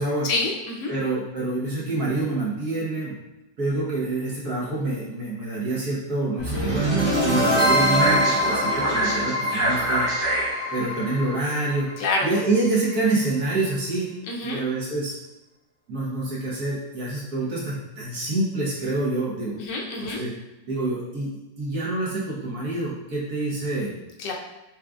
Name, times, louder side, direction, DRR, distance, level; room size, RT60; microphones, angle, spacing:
voice 1, 0.2-0.9 12.0-12.3 14.3-14.6 19.6-20.2 24.2-24.3, left 3 dB, 75° left, 0 dB, 1.4 m, -27 dB
voice 2, 0.9-3.1 3.6-6.9 7.2-10.1 10.7-11.9 12.2-14.1 14.4-15.1 15.9-19.6 20.0-20.3 20.7-21.3 21.6-24.0, right 2 dB, 60° right, -6 dB, 1.8 m, -26 dB
sound 1, 6.4-12.4, right 1 dB, 85° right, 2.2 m, -23 dB
6.0 x 3.4 x 2.5 m, 1.0 s
omnidirectional pair, 1.9 m